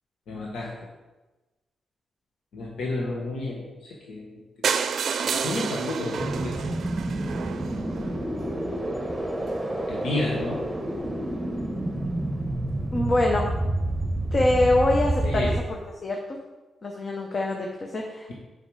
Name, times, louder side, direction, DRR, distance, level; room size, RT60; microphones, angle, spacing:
voice 1, 0.3-0.7 2.5-4.4 5.2-6.8 9.9-10.6 15.2-15.5, left 2 dB, 85° left, -3 dB, 1.3 m, -31 dB
sound 1, 4.6-8.5 9.2-9.3 9.5-9.6 9.9-10.0 10.2-10.3, right 6 dB, 65° right, 0.5 m, -30 dB
sound 2, 6.2-15.6, right 1 dB, 10° right, 1.1 m, -29 dB
voice 2, 12.9-13.5 14.3-16.2 16.8-18.3, left 2 dB, 40° left, 1 dB, 0.9 m, -24 dB
7.1 x 5.5 x 4.9 m, 1.1 s
cardioid pair, 95°, 0 cm